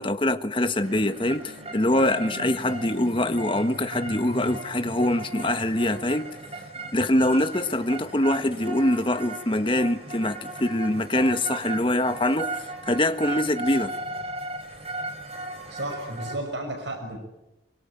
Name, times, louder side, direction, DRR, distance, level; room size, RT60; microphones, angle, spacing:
voice 1, 0.0-6.3 6.9-13.9, left 1 dB, 25° left, 1.4 m, -24 dB
sound 1, 0.8-16.4, right 2 dB, 35° right, 4.8 m, -36 dB
voice 2, 15.7-17.2, right 1 dB, 75° right, 6.0 m, -33 dB
25.0 x 24.0 x 9.0 m
head